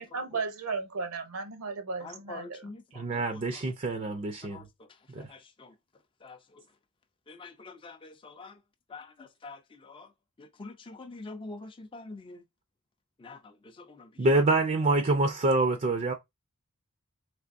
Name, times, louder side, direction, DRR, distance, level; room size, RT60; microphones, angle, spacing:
voice 1, 0.0-3.0, right 4 dB, 70° right, 0.7 m, -35 dB
voice 2, 2.0-2.8 3.1-3.4 4.5-4.6 5.2-5.7 6.2-6.4 7.3-8.5 8.9-10.1 10.4-12.4 13.2-13.4 13.9-14.1, left 3 dB, 25° left, 0.4 m, -45 dB
voice 3, 3.0-4.6 5.1-5.3 14.2-16.1, right 2 dB, 35° right, 0.5 m, -26 dB
3.4 x 3.2 x 2.5 m
head